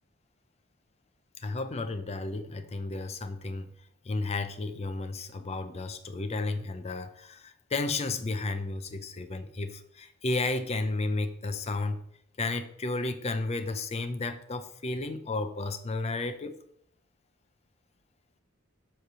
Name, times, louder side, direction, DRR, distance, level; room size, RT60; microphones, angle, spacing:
voice 1, 1.4-3.7 4.0-12.0 12.4-16.6, left 3 dB, 30° left, 9 dB, 0.5 m, -33 dB
7.4 x 3.2 x 6.2 m, 0.70 s
head